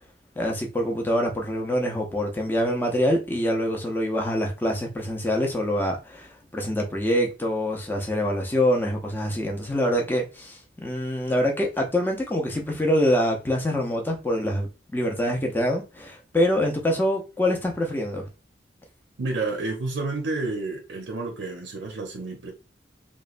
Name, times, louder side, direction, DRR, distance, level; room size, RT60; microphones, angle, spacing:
voice 1, 0.4-18.3, equal, 10° left, 0.5 m, -25 dB
voice 2, 19.2-22.5, right 3 dB, 80° right, 0.5 m, -30 dB
3.0 x 2.1 x 2.4 m
head